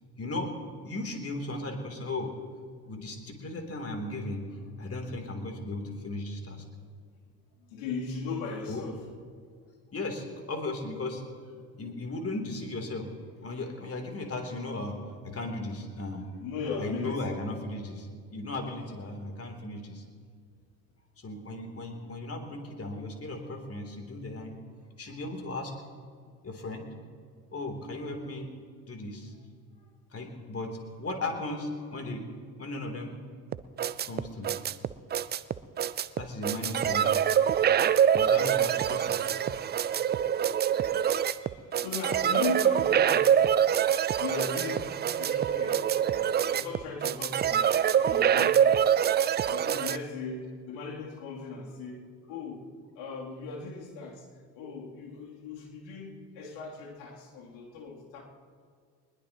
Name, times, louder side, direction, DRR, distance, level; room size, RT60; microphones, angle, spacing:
voice 1, 0.2-0.5 0.8-2.3 2.9-4.4 4.8-6.6 8.7-8.8 9.9-11.2 11.8-13.1 13.4-15.0 15.2-16.3 16.8-20.0 21.2-24.5 25.0-25.7 26.4-26.8 27.5-28.5 28.9-29.3 30.1-32.2 32.6-33.2 34.0-34.5 36.2-37.1 38.1-39.3 41.4-41.6, left 2 dB, 30° left, 3 dB, 3.4 m, -36 dB
voice 2, 7.6-9.1 16.4-17.3 29.8-29.9 41.8-43.5 44.2-47.7 48.1-49.0 49.5-52.7 53.0-54.3 54.5-58.2, left 4 dB, 65° left, -2 dB, 3.3 m, -38 dB
sound 1, 33.5-50.0, right 9 dB, 20° right, 0.4 m, -25 dB
22.5 x 21.0 x 3.0 m, 2.1 s
hypercardioid pair, 65°, 49 cm